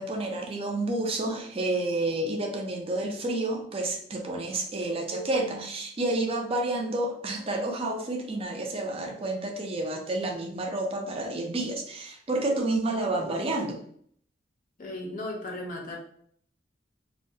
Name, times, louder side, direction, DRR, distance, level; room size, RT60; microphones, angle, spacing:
voice 1, 0.0-13.8, right 2 dB, 30° right, 2 dB, 0.4 m, -30 dB
voice 2, 14.8-16.0, left 1 dB, 45° left, 0 dB, 0.6 m, -36 dB
2.3 x 2.2 x 2.6 m, 0.62 s
head